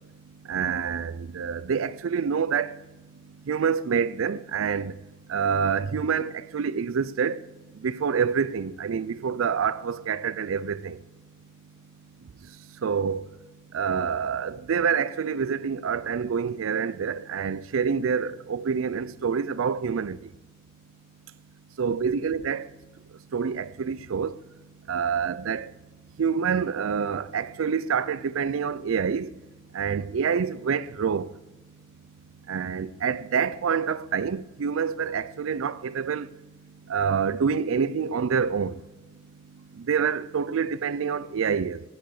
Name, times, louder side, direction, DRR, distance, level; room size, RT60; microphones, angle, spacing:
voice 1, 0.5-2.8 3.5-5.0 5.3-7.4 7.8-11.0 12.8-13.3 13.7-20.2 21.8-22.7 23.3-24.4 24.9-25.7 26.2-29.3 29.7-31.3 32.5-36.3 36.9-38.8 39.8-41.8, right 6 dB, 75° right, 0.4 m, -27 dB
15.5 x 6.7 x 6.4 m
head